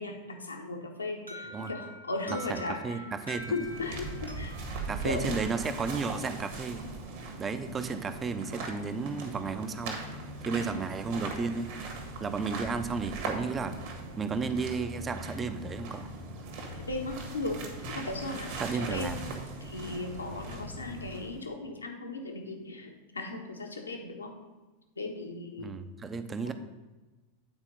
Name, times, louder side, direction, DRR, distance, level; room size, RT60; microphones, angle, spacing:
voice 1, 0.0-3.0 3.5-4.6 5.0-5.2 10.5-10.7 16.8-17.6 17.9-19.4 19.6-24.3 25.0-25.7, left 2 dB, 75° left, 3 dB, 1.1 m, -37 dB
Alarm, 1.3-6.1, equal, 90° right, 1.2 m, -46 dB
voice 2, 2.3-3.5 4.9-6.8 7.4-10.0 10.4-11.7 12.2-13.8 14.2-16.1 18.6-19.2 25.6-26.5, right 4 dB, 20° right, 10 dB, 0.6 m, -33 dB
sound 1, 3.2-21.4, right 2 dB, 50° right, 1.6 m, -40 dB
8.9 x 4.4 x 5.4 m, 1.2 s
figure-of-eight pair, 90°, 0 cm